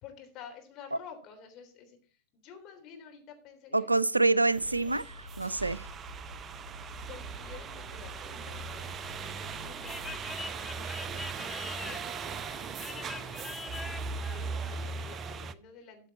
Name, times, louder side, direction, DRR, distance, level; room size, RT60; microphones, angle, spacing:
voice 1, 0.0-4.2 7.1-12.1 12.5-13.7 14.2-16.1, left 7 dB, 35° left, 3.4 m, -51 dB
voice 2, 3.7-5.9, right 2 dB, 85° right, 0.4 m, -26 dB
sound 1, 4.5-10.3, left 2 dB, 75° left, 2.4 m, -49 dB
sound 2, 4.5-15.5, right 5 dB, 25° right, 0.6 m, -39 dB
sound 3, 9.7-14.8, left 4 dB, 10° left, 0.7 m, -44 dB
13.5 x 7.5 x 4.1 m
figure-of-eight pair, 90°, 0 cm